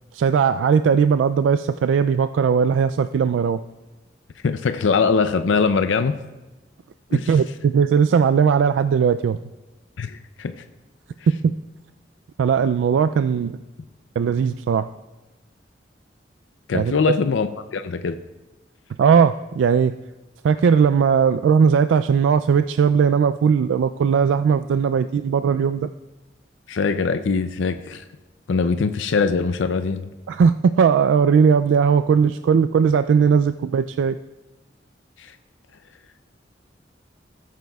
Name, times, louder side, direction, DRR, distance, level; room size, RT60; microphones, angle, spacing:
voice 1, 0.1-3.6 7.3-9.4 11.4-11.5 12.4-13.6 14.2-14.9 16.7-16.9 19.0-19.9 20.4-25.9 30.3-34.2, right 6 dB, 85° right, 10 dB, 0.3 m, -18 dB
voice 2, 4.4-6.2 7.1-7.3 10.0-10.6 16.7-18.2 26.7-28.0 28.5-30.1 35.2-35.4, left 5 dB, 90° left, 10 dB, 0.5 m, -22 dB
17.0 x 9.3 x 2.3 m, 1.1 s
head